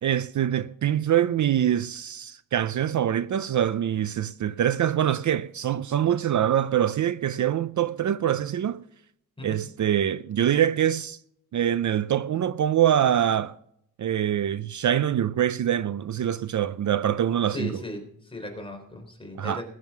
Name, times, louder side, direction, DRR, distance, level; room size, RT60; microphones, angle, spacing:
voice 1, 0.0-8.8 9.4-11.2 11.5-13.5 14.0-17.7 19.4-19.6, right 10 dB, 55° right, 0.5 m, -24 dB
voice 2, 17.5-19.6, left 2 dB, 15° left, 4.1 m, -37 dB
20.0 x 9.2 x 6.0 m
wide cardioid pair, 145°, 36 cm